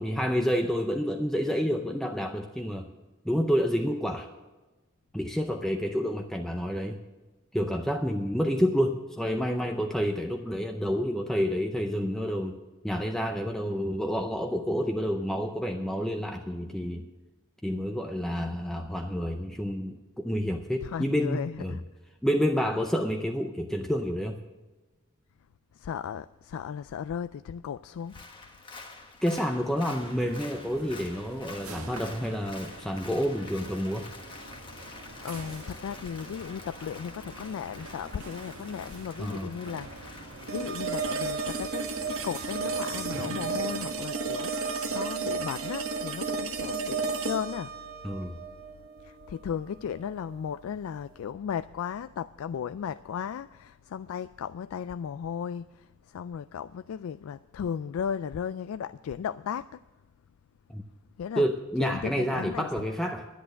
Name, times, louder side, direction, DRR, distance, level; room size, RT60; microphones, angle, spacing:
voice 1, 0.0-2.9 3.2-4.3 5.1-7.0 7.5-12.6 12.8-17.1 17.6-21.8 22.2-24.4 29.2-34.1 39.2-39.5 48.0-48.4 60.7-60.8 61.4-63.3, equal, ahead, 0.5 m, -29 dB
voice 2, 20.8-21.8 25.8-28.2 35.2-47.7 49.0-59.8 61.2-61.4 61.8-62.9, left 7 dB, 70° left, 0.3 m, -36 dB
Applause, 28.0-44.6 45.0-45.1, left 3 dB, 20° left, 1.3 m, -48 dB
sound 1, 29.9-44.0, right 2 dB, 80° right, 1.7 m, -46 dB
sound 2, 40.5-49.5, right 4 dB, 65° right, 1.1 m, -32 dB
11.0 x 10.5 x 6.4 m
head